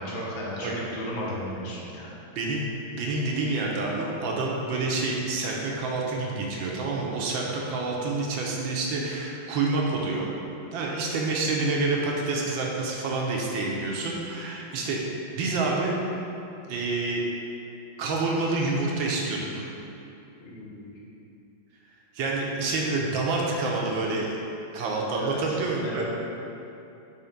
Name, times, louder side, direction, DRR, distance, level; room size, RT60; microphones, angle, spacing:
voice 1, 0.0-2.1 20.4-20.9 25.1-25.4 25.8-26.0, equal, 45° left, -5 dB, 1.2 m, -34 dB
voice 2, 0.6-1.1 2.3-2.6 2.9-10.3 10.7-15.0 15.3-15.9 16.7-17.2 18.0-19.7 22.1-24.3 24.7-26.0, right 3 dB, 75° right, -2 dB, 1.4 m, -28 dB
5.7 x 3.3 x 5.0 m, 2.7 s
omnidirectional pair, 2.2 m